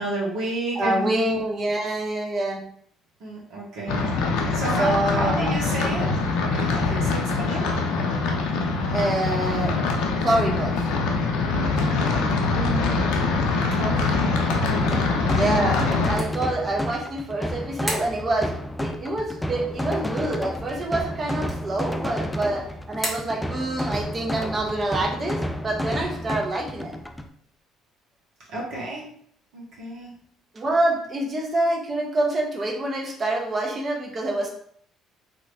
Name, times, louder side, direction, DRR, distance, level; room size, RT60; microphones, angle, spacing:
voice 1, 0.0-1.4 3.2-6.1 6.5-7.7 12.5-12.9 13.8-14.2 15.2-15.4 28.5-29.0 29.5-30.1, right 1 dB, 65° right, -5 dB, 1.3 m, -31 dB
voice 2, 0.7-2.6 4.8-5.5 8.9-9.8 10.2-10.8 15.2-26.9 30.5-34.6, right 1 dB, 35° right, 0 dB, 0.9 m, -26 dB
sound 1, 3.9-16.2, left 3 dB, 70° left, 0.5 m, -23 dB
sound 2, 14.5-27.3, equal, 10° left, 0.4 m, -31 dB
sound 3, 27.5-27.6, equal, 15° right, 1.3 m, -42 dB
3.0 x 2.8 x 2.6 m, 0.63 s
hypercardioid pair, 55°, 0 cm